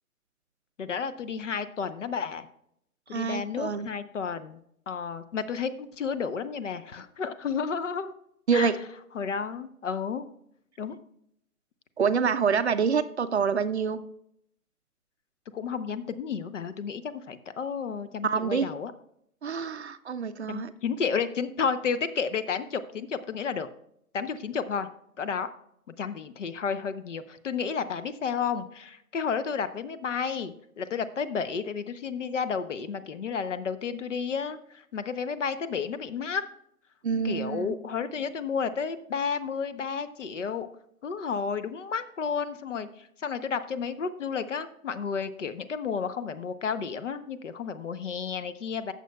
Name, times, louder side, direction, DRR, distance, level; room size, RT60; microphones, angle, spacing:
voice 1, 0.8-2.5 3.1-4.6 4.9-8.1 8.5-8.7 9.1-10.3 10.8-11.0 15.5-18.9 20.5-23.7 24.1-24.9 25.2-25.5 26.0-36.4 37.1-40.7 41.0-48.9, left 6 dB, 55° left, 13 dB, 0.7 m, -32 dB
voice 2, 3.1-3.9 8.5-8.8 12.0-14.0 18.2-18.7 19.4-20.7 37.0-37.7, right 6 dB, 50° right, 11 dB, 0.5 m, -26 dB
15.0 x 6.7 x 2.3 m, 0.73 s
hypercardioid pair, 160°, 45 cm